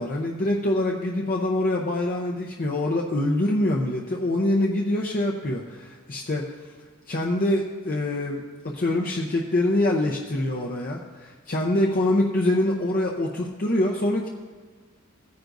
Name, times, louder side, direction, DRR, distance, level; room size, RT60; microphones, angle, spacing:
voice 1, 0.0-6.5 7.1-14.3, left 1 dB, 40° left, -1 dB, 0.7 m, -25 dB
16.5 x 9.4 x 2.6 m, 1.5 s
head